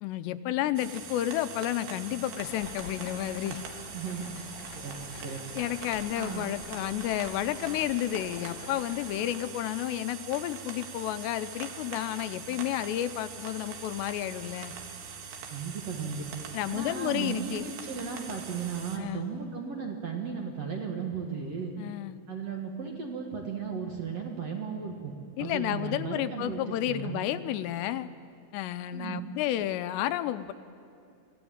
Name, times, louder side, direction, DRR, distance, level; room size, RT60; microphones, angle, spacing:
voice 1, 0.0-3.6 5.5-14.7 16.5-17.6 19.0-19.3 21.8-22.2 25.4-28.1 28.5-30.5, left 13 dB, 85° left, 11 dB, 2.9 m, -31 dB
sound 1, 0.8-19.0, right 6 dB, 70° right, 3.6 m, -43 dB
Stream, 2.1-9.6, left 6 dB, 70° left, 1.7 m, -47 dB
voice 2, 3.9-4.5 4.7-5.4 6.1-6.5 15.5-16.3 16.7-21.8 22.3-27.2 28.9-29.3, right 6 dB, 50° right, 1 dB, 2.1 m, -36 dB
25.5 x 17.0 x 8.7 m, 2.5 s
omnidirectional pair, 4.9 m